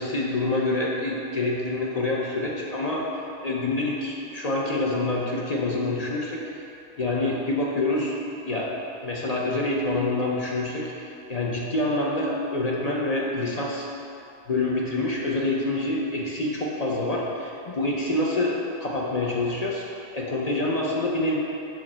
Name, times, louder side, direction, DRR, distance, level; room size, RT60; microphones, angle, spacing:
voice 1, 0.0-3.0 3.4-6.4 7.0-8.1 8.4-8.7 9.0-13.9 14.5-19.8 20.1-21.4, left 2 dB, 40° left, -4 dB, 0.6 m, -26 dB
5.7 x 4.9 x 4.2 m, 2.9 s
omnidirectional pair, 1.2 m